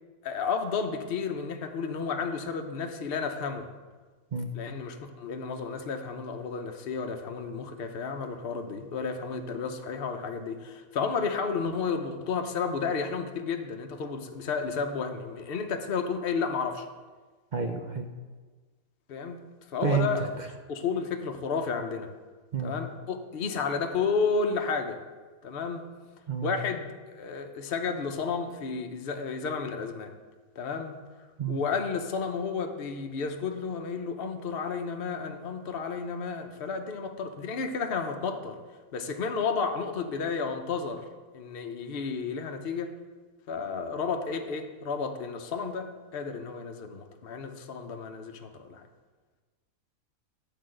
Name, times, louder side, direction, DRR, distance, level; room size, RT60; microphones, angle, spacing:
voice 1, 0.2-3.7 4.5-16.9 19.1-19.4 19.7-20.3 20.7-22.1 22.6-25.0 25.4-25.9 26.4-30.1 30.6-31.0 31.5-38.6 38.9-41.0 41.3-42.9 43.5-48.9, left 5 dB, 50° left, 5 dB, 0.9 m, -32 dB
voice 2, 17.5-18.1 19.8-20.1 22.5-22.7 26.3-26.6 31.4-31.6, right 6 dB, 50° right, 4 dB, 0.5 m, -29 dB
10.0 x 4.7 x 7.6 m, 1.4 s
omnidirectional pair, 1.5 m